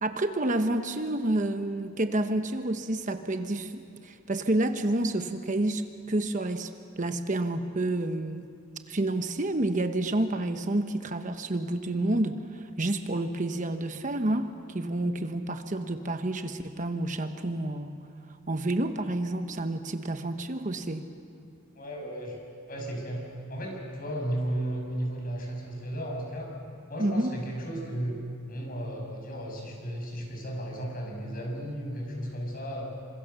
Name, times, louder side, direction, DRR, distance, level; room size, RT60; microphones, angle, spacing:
voice 1, 0.0-5.8 6.1-6.7 7.0-8.5 8.9-18.0 18.5-21.0 27.0-27.3, right 1 dB, 40° right, 7 dB, 1.1 m, -29 dB
voice 2, 21.7-22.4 22.7-23.2 23.5-26.5 26.9-28.2 28.5-32.9, right 1 dB, 45° left, 1 dB, 6.3 m, -34 dB
28.0 x 26.0 x 6.9 m, 2.4 s
head